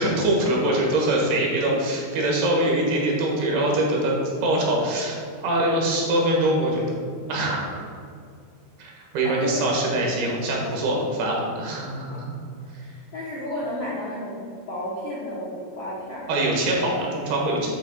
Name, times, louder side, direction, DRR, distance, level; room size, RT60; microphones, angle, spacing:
voice 1, 0.0-4.1 4.4-6.9 7.3-7.9 8.8-12.4 16.3-17.7, right 1 dB, 75° right, -2 dB, 3.3 m, -23 dB
voice 2, 9.2-9.7 12.8-16.3 17.6-17.7, left 1 dB, 65° left, -9 dB, 1.6 m, -32 dB
8.5 x 3.2 x 6.3 m, 2.2 s
omnidirectional pair, 4.7 m